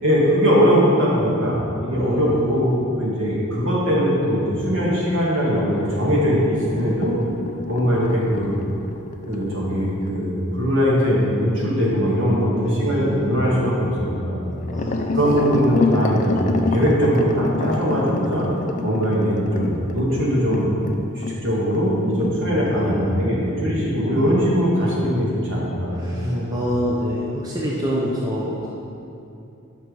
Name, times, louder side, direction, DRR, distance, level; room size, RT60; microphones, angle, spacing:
voice 1, 0.0-7.1 7.7-8.5 9.3-14.5 15.1-18.5 18.8-20.7 21.1-26.4, equal, 60° right, -5 dB, 1.6 m, -21 dB
voice 2, 1.8-2.8 12.5-13.2 14.7-15.7 21.7-22.1 22.7-23.2 24.1-24.3 25.9-28.7, equal, 20° right, -5 dB, 0.6 m, -28 dB
sound 1, 6.5-11.2 14.6-21.4 21.7-21.9 22.2-22.3 22.8-22.9, left 3 dB, 35° left, 0.3 m, -28 dB
5.8 x 4.8 x 5.2 m, 2.7 s
head